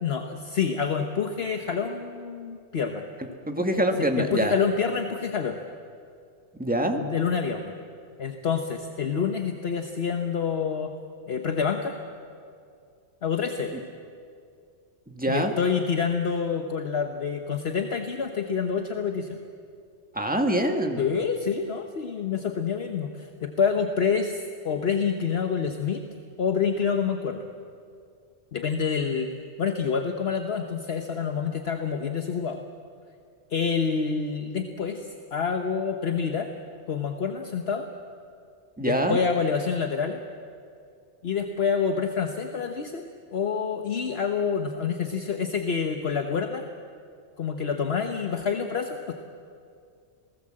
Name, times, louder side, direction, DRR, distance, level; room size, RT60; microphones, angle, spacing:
voice 1, 0.0-3.1 4.0-5.6 7.0-7.7 8.2-10.9 11.3-12.0 13.2-13.8 15.3-19.4 21.0-26.0 26.4-27.5 28.5-29.3 29.6-32.6 33.5-36.5 36.9-37.9 38.8-40.2 41.2-43.0 43.3-46.6 47.4-49.1, left 6 dB, 60° left, 5 dB, 1.3 m, -27 dB
voice 2, 3.4-4.5 6.6-7.0 15.1-15.5 20.1-21.0 38.8-39.2, right 1 dB, 5° right, 4 dB, 1.6 m, -25 dB
27.0 x 18.5 x 7.7 m, 2.3 s
omnidirectional pair, 1.2 m